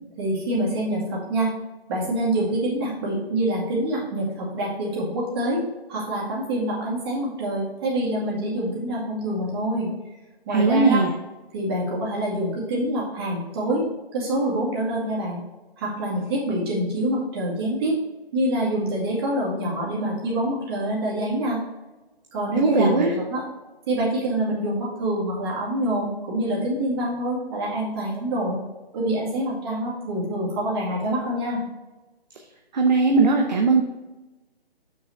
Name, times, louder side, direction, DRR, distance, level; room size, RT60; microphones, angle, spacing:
voice 1, 0.2-1.5 1.9-5.6 5.9-9.9 10.5-11.0 11.5-13.8 14.1-15.4 15.8-18.0 18.3-21.6 22.3-23.0 23.3-23.4 23.9-28.6 28.9-31.6, right 1 dB, 25° right, -5 dB, 2.3 m, -26 dB
voice 2, 10.5-11.1 22.6-23.1 32.7-33.8, right 3 dB, 45° right, 2 dB, 0.8 m, -19 dB
6.7 x 6.2 x 4.3 m, 1.1 s
hypercardioid pair, 160°, 31 cm